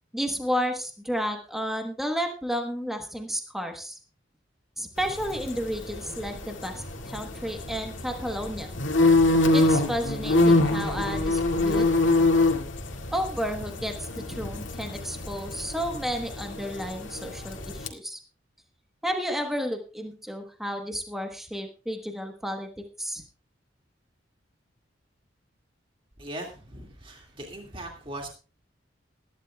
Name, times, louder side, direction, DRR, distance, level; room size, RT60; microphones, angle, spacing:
voice 1, 0.1-4.0 4.8-8.7 9.5-11.8 13.1-18.2 19.0-22.7 23.0-23.2, equal, ahead, 3 dB, 1.1 m, -32 dB
sound 1, 5.0-17.9, left 2 dB, 80° left, 2.1 m, -25 dB
voice 2, 26.2-28.3, right 1 dB, 25° right, 1 dB, 2.1 m, -39 dB
21.0 x 11.0 x 2.3 m, 0.35 s
head